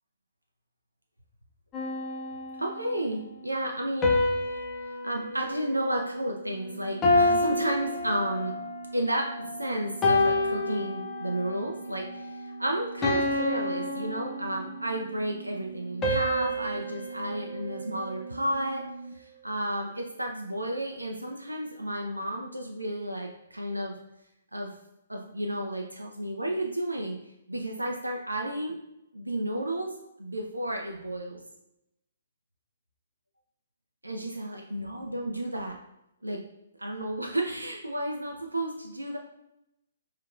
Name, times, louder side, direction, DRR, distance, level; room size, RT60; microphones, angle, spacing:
sound 1, 1.7-3.0 4.0-6.5 7.0-8.7 9.3-9.5 10.0-11.6 12.0-12.3 13.0-14.9 16.0-18.4, left 2 dB, 20° left, 0.7 m, -29 dB
voice 1, 2.6-4.1 5.0-8.5 8.9-18.8 19.2-23.9 24.5-24.7 25.1-27.2 27.5-28.8 29.1-29.9 30.2-31.4 34.0-35.8 36.2-36.4 36.8-39.2, right 1 dB, 85° right, 1 dB, 0.5 m, -32 dB
sound 2, 2.9-19.1, right 3 dB, 40° right, 1.4 m, -44 dB
4.6 x 3.3 x 2.4 m, 0.85 s
figure-of-eight pair, 125°, 0 cm